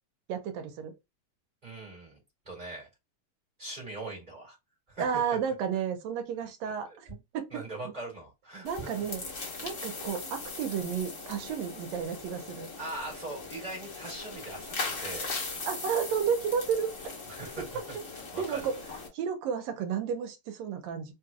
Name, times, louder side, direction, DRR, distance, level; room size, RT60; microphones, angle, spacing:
voice 1, 0.3-0.9 5.0-7.9 8.6-9.2 9.6-12.7 15.7-17.1 18.4-18.8 19.1-21.1, right 7 dB, 75° right, 1.8 m, -32 dB
voice 2, 1.6-2.2 2.4-2.9 3.6-4.6 4.9-5.0 6.6-7.0 7.5-8.9 12.8-15.3 17.3-18.0 18.3-18.7, right 2 dB, 15° right, 1.8 m, -41 dB
sound 1, 8.6-19.1, left 3 dB, 45° left, 1.0 m, -39 dB
4.4 x 3.2 x 2.2 m
omnidirectional pair, 3.3 m